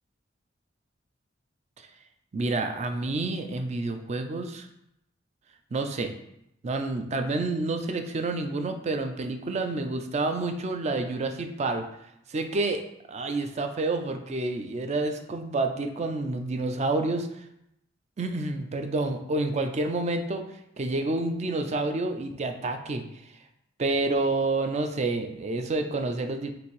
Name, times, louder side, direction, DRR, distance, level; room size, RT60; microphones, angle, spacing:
voice 1, 2.3-4.7 5.7-6.1 6.6-11.9 12.3-12.8 13.1-17.3 18.2-20.4 20.8-23.0 23.8-26.5, right 2 dB, 35° right, 6 dB, 0.4 m, -28 dB
5.7 x 2.6 x 3.2 m, 0.80 s
head